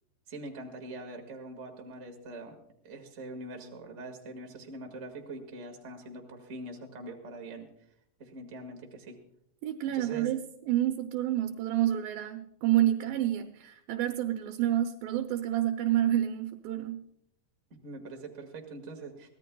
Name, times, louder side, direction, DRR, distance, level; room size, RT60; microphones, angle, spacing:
voice 1, 0.3-2.5 2.8-7.7 8.2-9.1 9.9-10.3 17.7-19.4, right 2 dB, 30° right, 2 dB, 1.5 m, -43 dB
voice 2, 9.6-17.0, right 12 dB, 85° right, 6 dB, 2.5 m, -29 dB
23.5 x 17.0 x 2.3 m, 0.72 s
omnidirectional pair, 3.9 m